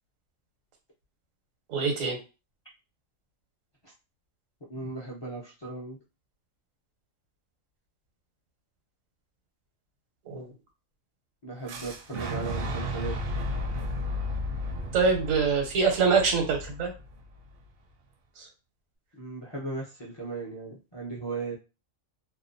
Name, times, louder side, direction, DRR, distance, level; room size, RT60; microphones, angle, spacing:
voice 1, 1.7-2.2 10.3-10.5 14.9-16.9 18.4-18.5, right 5 dB, 90° right, 4 dB, 1.2 m, -25 dB
voice 2, 4.7-6.0 11.4-13.2 19.1-21.6, right 3 dB, 35° left, -4 dB, 0.4 m, -37 dB
Boom, 11.7-17.6, left 1 dB, 65° right, 0.6 m, -34 dB
2.6 x 2.2 x 2.5 m, 0.30 s
omnidirectional pair, 1.3 m